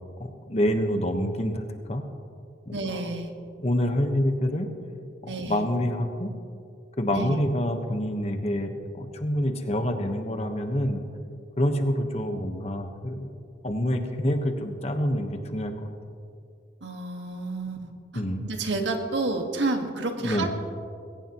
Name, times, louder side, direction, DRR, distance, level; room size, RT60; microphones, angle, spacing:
voice 1, 0.2-1.6 1.9-2.0 2.7-3.0 3.6-4.7 5.2-6.3 7.0-11.0 11.6-13.3 13.6-15.9 18.1-18.4 20.2-20.5, equal, 35° left, 5 dB, 1.2 m, -27 dB
voice 2, 2.7-3.3 5.3-5.6 7.1-7.4 16.8-17.9 18.4-20.5, right 3 dB, 80° right, 4 dB, 1.7 m, -30 dB
20.5 x 17.5 x 3.0 m, 2.4 s
head